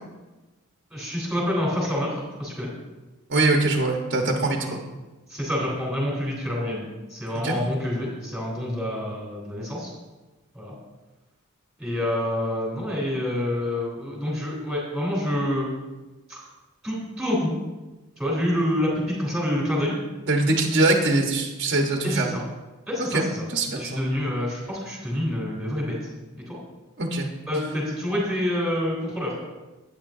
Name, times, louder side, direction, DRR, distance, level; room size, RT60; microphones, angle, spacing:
voice 1, 0.9-2.7 4.6-4.8 5.3-9.9 10.5-10.7 11.8-15.7 16.3-16.4 16.8-17.5 18.2-20.0 22.0-22.4 22.9-23.5 23.7-26.0 26.4-26.6 27.5-29.3, left 1 dB, 5° right, -4 dB, 3.6 m, -27 dB
voice 2, 3.3-4.8 7.4-7.5 20.3-22.3 23.1-23.2 23.5-24.0 27.0-27.3, right 2 dB, 55° right, 1 dB, 1.1 m, -22 dB
12.0 x 9.4 x 2.7 m, 1.1 s
head